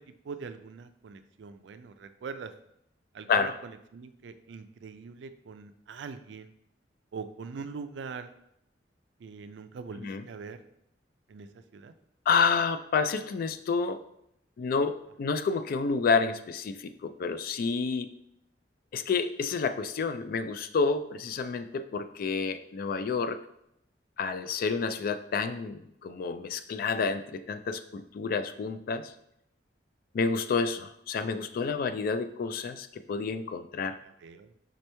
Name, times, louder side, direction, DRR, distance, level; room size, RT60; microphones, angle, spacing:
voice 1, 0.3-2.5 3.1-6.5 7.1-8.3 9.2-10.6 11.3-11.5 11.7-11.9 34.2-34.5, right 5 dB, 75° right, 10 dB, 0.4 m, -42 dB
voice 2, 12.3-14.0 14.6-18.1 18.9-23.4 24.2-29.1 30.1-34.0, left 5 dB, 55° left, 11 dB, 0.3 m, -29 dB
5.2 x 2.9 x 3.3 m, 0.76 s
head